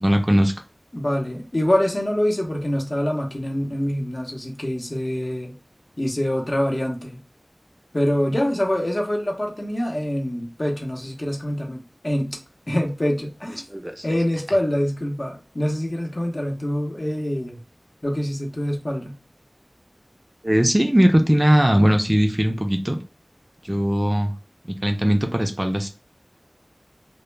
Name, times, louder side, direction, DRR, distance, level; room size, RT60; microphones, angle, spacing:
voice 1, 0.0-0.5 13.7-14.0 20.4-23.0 23.6-24.3 24.7-25.9, equal, 25° right, 5 dB, 0.4 m, -19 dB
voice 2, 0.9-5.5 6.0-7.2 7.9-12.4 12.7-13.6 14.0-17.6 18.0-19.2, equal, 55° left, 0 dB, 0.7 m, -25 dB
2.1 x 2.0 x 3.1 m, 0.35 s
wide cardioid pair, 40°, 0 cm